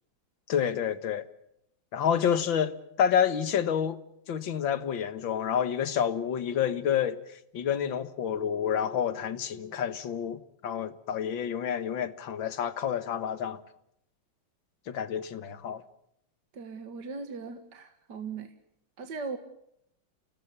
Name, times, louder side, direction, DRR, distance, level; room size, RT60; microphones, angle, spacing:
voice 1, 0.5-1.2 1.9-4.0 4.3-7.2 7.5-13.6 14.9-15.8, left 8 dB, 70° left, 2.1 m, -29 dB
voice 2, 16.5-18.5 19.0-19.4, right 4 dB, 60° right, 2.2 m, -38 dB
29.0 x 18.5 x 7.1 m
omnidirectional pair, 2.2 m